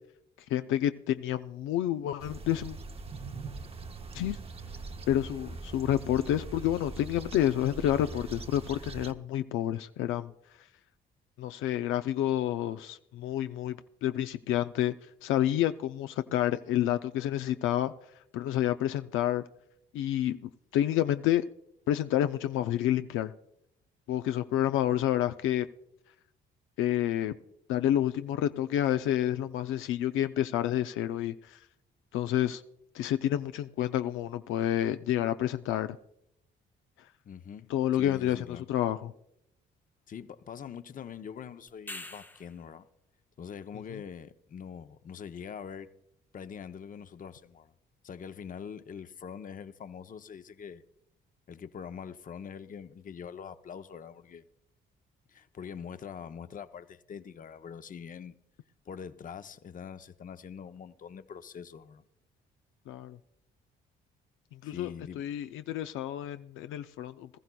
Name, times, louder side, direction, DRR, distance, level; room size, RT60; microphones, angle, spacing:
voice 1, 0.5-2.8 4.1-4.4 5.1-10.3 11.4-13.8 14.0-15.0 15.2-17.9 18.3-19.4 19.9-21.5 21.9-23.3 24.1-25.7 26.8-27.3 27.7-31.6 32.1-32.6 32.9-36.0 37.7-39.1 43.9-44.0 62.9-63.2 64.5-67.3, left 12 dB, 85° left, 0.4 m, -29 dB
sound 1, 2.2-9.1, right 3 dB, 30° right, 0.7 m, -42 dB
voice 2, 37.2-38.7 40.1-42.9 43.4-45.9 46.3-47.7 48.0-50.8 51.5-54.4 55.3-58.4 58.9-62.0 64.6-65.2, left 7 dB, 45° left, 0.7 m, -44 dB
sound 2, 41.7-42.7 47.3-47.4, left 2 dB, 10° left, 0.5 m, -43 dB
20.0 x 13.5 x 2.3 m
cardioid pair, 90°, 20 cm